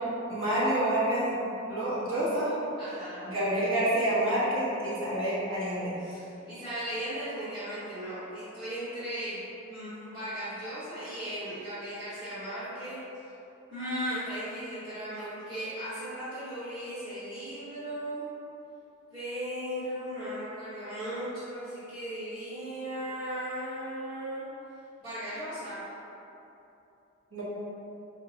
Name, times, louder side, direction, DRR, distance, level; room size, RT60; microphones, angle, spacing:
voice 1, 0.3-2.5 3.2-6.0 27.3-27.4, right 1 dB, 75° right, -9 dB, 1.3 m, -28 dB
voice 2, 2.8-3.3 6.0-13.0 13.7-18.3 19.1-24.4 25.0-25.9, equal, 20° right, -16 dB, 1.2 m, -37 dB
4.1 x 2.8 x 2.8 m, 2.8 s
head